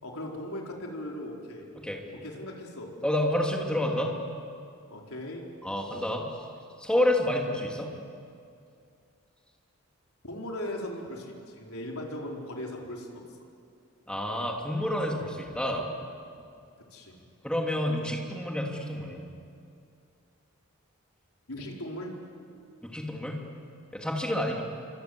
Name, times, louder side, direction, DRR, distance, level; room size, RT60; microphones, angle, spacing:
voice 1, 0.0-1.7 2.2-2.9 4.9-5.4 10.2-13.2 16.9-17.2 21.5-22.2, left 1 dB, 70° left, -1 dB, 4.5 m, -38 dB
voice 2, 3.0-4.1 5.6-6.3 6.8-7.9 14.1-15.9 17.4-19.2 22.8-23.4 23.9-24.6, left 1 dB, 5° left, 0 dB, 3.1 m, -29 dB
27.5 x 25.5 x 8.1 m, 2.4 s
head